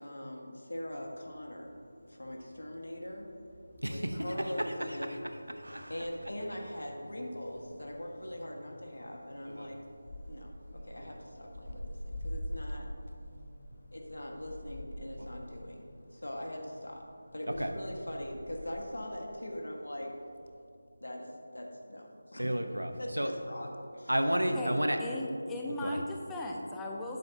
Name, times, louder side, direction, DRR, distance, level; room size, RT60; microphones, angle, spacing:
voice 1, 0.0-1.7 2.1-3.3 3.9-5.2 5.9-9.8 10.3-12.9 13.9-17.1 17.3-20.1 21.0-22.5 23.0-24.2, left 1 dB, 70° left, 1 dB, 1.7 m, -41 dB
sound 1, 0.9-20.6, equal, 35° left, 1.5 m, -47 dB
voice 2, 3.8-5.2 5.6-5.9 9.5-9.8 11.0-11.1 15.2-15.3 17.6-17.7 22.4-23.3 24.1-25.0 25.8-26.0, equal, 85° right, 6 dB, 1.1 m, -32 dB
voice 3, 24.5-27.2, left 1 dB, 5° left, -1 dB, 0.6 m, -37 dB
12.0 x 11.0 x 2.9 m, 2.7 s
figure-of-eight pair, 165°, 0 cm